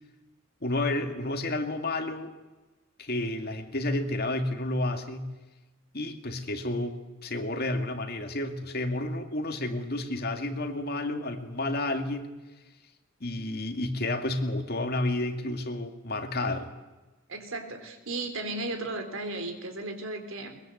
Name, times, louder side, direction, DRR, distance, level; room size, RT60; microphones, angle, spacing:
voice 1, 0.6-2.3 3.0-5.3 5.9-12.3 13.2-16.7, left 2 dB, 50° left, 6 dB, 2.2 m, -31 dB
voice 2, 17.3-20.6, right 2 dB, 65° right, 6 dB, 3.5 m, -35 dB
22.0 x 21.5 x 8.0 m, 1.1 s
head